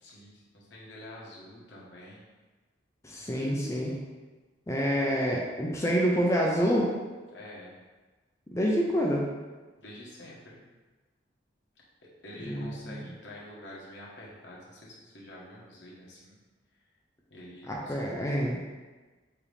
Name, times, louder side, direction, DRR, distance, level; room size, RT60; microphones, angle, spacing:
voice 1, 0.0-2.2 7.3-7.7 9.8-10.6 12.2-16.4 17.3-18.1, left 1 dB, 75° left, -5 dB, 1.2 m, -47 dB
voice 2, 3.0-3.9 4.7-6.9 8.5-9.2 12.5-12.9 17.7-18.6, equal, 15° left, -3 dB, 0.5 m, -27 dB
4.8 x 2.9 x 3.3 m, 1.3 s
head